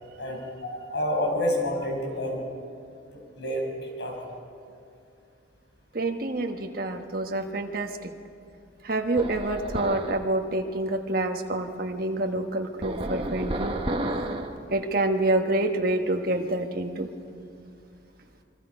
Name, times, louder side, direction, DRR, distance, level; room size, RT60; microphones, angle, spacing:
voice 1, 0.2-2.4 3.1-4.2, left 1 dB, 70° left, 0 dB, 5.6 m, -29 dB
voice 2, 5.9-8.1 8.8-13.8 14.7-17.1, right 2 dB, 50° right, 4 dB, 1.3 m, -27 dB
sound 1, 9.2-10.2 12.8-14.6, right 1 dB, 30° right, 1.2 m, -31 dB
27.5 x 21.5 x 5.3 m, 2.4 s
head